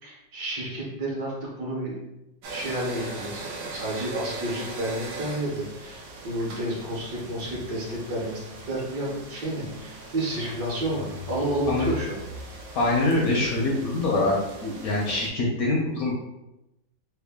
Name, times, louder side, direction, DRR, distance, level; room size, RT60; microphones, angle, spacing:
voice 1, 0.0-2.0 2.5-12.2, right 1 dB, 65° right, -4 dB, 1.5 m, -31 dB
sound 1, 2.4-15.3, right 3 dB, 90° right, 1.4 m, -40 dB
sound 2, 10.2-15.2, left 6 dB, 85° left, 1.3 m, -41 dB
voice 2, 12.8-14.3 14.6-16.1, left 2 dB, 65° left, -3 dB, 0.9 m, -24 dB
3.6 x 2.1 x 3.4 m, 0.91 s
omnidirectional pair, 2.0 m